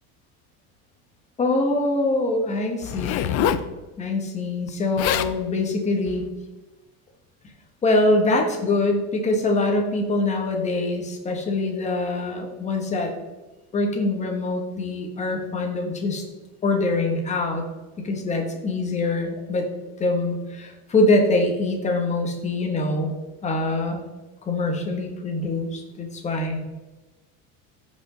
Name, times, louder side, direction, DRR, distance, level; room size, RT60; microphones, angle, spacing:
voice 1, 1.4-3.5 4.0-6.2 7.8-13.1 13.7-16.2 16.6-17.6 18.0-19.7 20.0-23.1 23.4-24.0 24.5-26.6, left 2 dB, 20° left, 2 dB, 1.4 m, -24 dB
Zipper (clothing), 2.8-3.7 4.7-4.8 5.0-5.3 6.1-6.3, left 10 dB, 50° left, 0.5 m, -25 dB
14.5 x 5.4 x 3.8 m, 1.2 s
cardioid pair, 170°, 33 cm